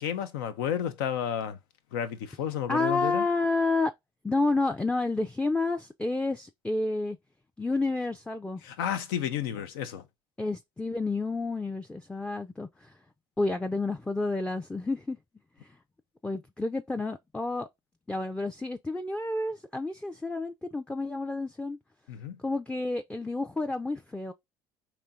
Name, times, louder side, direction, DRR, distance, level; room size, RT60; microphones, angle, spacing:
voice 1, 0.0-1.6 1.9-3.3 8.6-10.0 22.1-22.4, left 9 dB, 80° left, 0.7 m, -31 dB
voice 2, 2.7-3.9 4.2-7.2 7.6-8.6 10.4-12.9 13.4-15.2 15.6-15.8 16.2-17.7 18.1-21.8 22.4-24.3, left 3 dB, 10° left, 0.5 m, -30 dB
4.3 x 3.0 x 3.7 m
hypercardioid pair, 70°, 12 cm